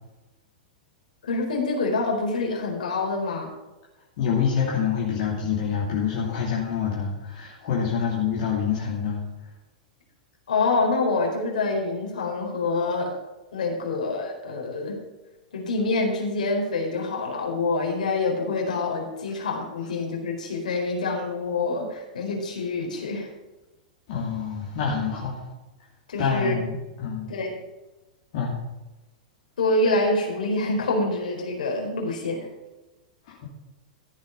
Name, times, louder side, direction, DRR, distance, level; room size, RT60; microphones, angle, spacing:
voice 1, 1.2-3.5 10.5-13.1 13.5-15.0 15.5-23.3 26.1-26.5 27.3-27.6 29.6-32.5, left 3 dB, 70° left, 0 dB, 4.2 m, -26 dB
voice 2, 4.2-9.2 19.3-19.4 24.1-25.5 26.2-27.3 28.3-28.6 33.3-33.5, left 7 dB, 50° left, -4 dB, 2.7 m, -26 dB
14.5 x 8.0 x 5.4 m, 1.1 s
figure-of-eight pair, 100°, 4 cm